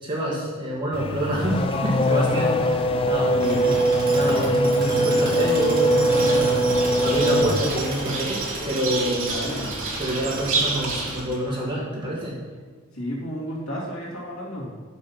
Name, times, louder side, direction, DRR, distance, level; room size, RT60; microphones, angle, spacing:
voice 1, 0.0-3.5 4.1-6.6 7.0-8.4 8.7-9.3 10.0-12.4, right 1 dB, 25° right, -4 dB, 2.0 m, -27 dB
Race car auto racing / Accelerating revving vroom, 0.9-8.2, equal, 25° left, 0.4 m, -22 dB
voice 2, 3.3-3.8 9.3-9.7 12.9-14.7, equal, 85° left, -5 dB, 2.5 m, -31 dB
Tools, 3.4-11.7, right 2 dB, 45° right, 2.3 m, -34 dB
sound 1, 6.0-11.2, right 3 dB, 80° right, 2.2 m, -30 dB
6.6 x 6.4 x 5.7 m, 1.4 s
head